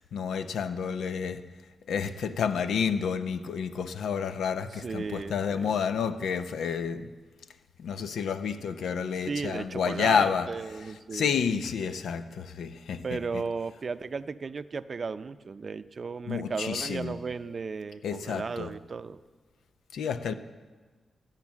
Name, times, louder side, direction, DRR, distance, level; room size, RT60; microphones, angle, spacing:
voice 1, 0.0-1.5 1.9-7.1 7.8-10.5 11.1-13.4 16.3-17.2 18.0-18.7 19.9-20.3, left 6 dB, 85° left, 0.6 m, -30 dB
voice 2, 4.8-5.7 9.3-11.4 13.0-19.2, right 4 dB, 55° right, 0.5 m, -35 dB
14.0 x 9.0 x 7.2 m
cardioid pair, 55°, 0 cm